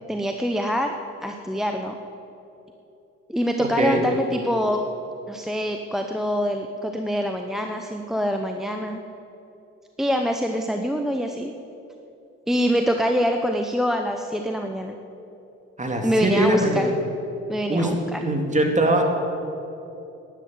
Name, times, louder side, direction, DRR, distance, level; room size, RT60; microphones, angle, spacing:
voice 1, 0.1-0.9 1.2-1.9 3.3-4.8 5.3-9.0 10.0-11.5 12.5-14.9 16.0-16.8 17.5-18.2, equal, ahead, 4 dB, 0.8 m, -25 dB
voice 2, 3.6-4.0 15.8-16.9 17.7-19.0, right 1 dB, 25° right, 3 dB, 2.4 m, -22 dB
11.0 x 11.0 x 8.0 m, 2.9 s
cardioid pair, 90°, 30 cm